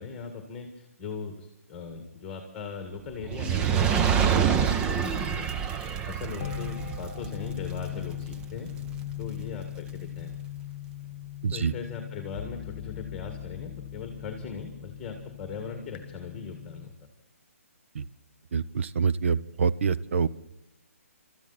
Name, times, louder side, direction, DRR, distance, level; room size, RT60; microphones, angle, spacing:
voice 1, 0.0-8.7 9.2-10.3 11.5-16.9, left 5 dB, 15° left, 5 dB, 1.8 m, -39 dB
Fire, 3.2-9.6 10.3-10.4, right 8 dB, 10° right, 0.5 m, -27 dB
sound 1, 6.4-16.9, left 13 dB, 35° left, 1.4 m, -39 dB
voice 2, 18.5-20.3, right 6 dB, 55° right, 14 dB, 0.7 m, -26 dB
25.0 x 13.5 x 4.1 m, 0.85 s
hypercardioid pair, 155°, 8 cm